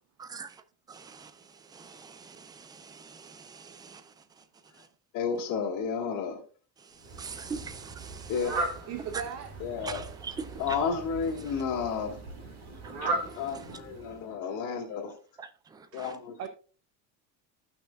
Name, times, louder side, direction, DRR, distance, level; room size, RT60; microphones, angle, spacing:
voice 1, 0.9-1.3 1.8-2.1 3.8-4.0 7.2-8.3 9.8-10.8 15.4-15.5 16.0-16.1, right 5 dB, 10° right, 0.5 m, -40 dB
voice 2, 5.1-6.4 8.3-8.5 9.6-10.1 10.6-12.2 13.0-13.1 13.4-15.1 15.9-16.4, left 6 dB, 55° left, 2.2 m, -31 dB
Fowl, 7.0-14.3, right 2 dB, 65° right, 4.7 m, -38 dB
voice 3, 8.9-9.8 13.7-13.8 15.9-16.1 16.4-16.5, right 8 dB, 40° right, 0.8 m, -39 dB
14.5 x 5.9 x 2.4 m
cardioid pair, 150°, 37 cm